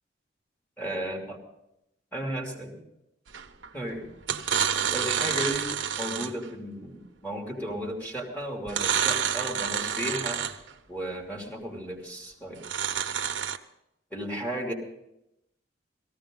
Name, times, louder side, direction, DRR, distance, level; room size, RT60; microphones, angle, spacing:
voice 1, 0.8-1.4 2.1-2.8 3.7-4.1 4.9-5.7 6.0-10.4 10.9-12.6 14.1-14.7, right 1 dB, 10° left, -3 dB, 2.9 m, -34 dB
sound 1, 3.3-3.7 4.2-6.5 8.7-10.7 12.6-13.6, right 8 dB, 85° right, 0.9 m, -28 dB
18.0 x 15.0 x 3.8 m, 0.83 s
head